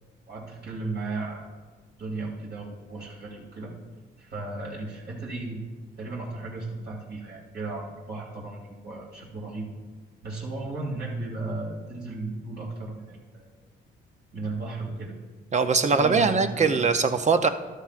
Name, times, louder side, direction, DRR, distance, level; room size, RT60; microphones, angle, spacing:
voice 1, 0.3-1.4 2.0-3.7 4.2-5.6 6.0-9.7 10.2-13.5 14.3-15.1 15.9-17.0, right 3 dB, 60° right, -4 dB, 2.7 m, -35 dB
voice 2, 15.5-17.5, right 4 dB, 35° right, 8 dB, 0.6 m, -21 dB
13.0 x 11.5 x 2.5 m, 1.4 s
cardioid pair, 90°, 20 cm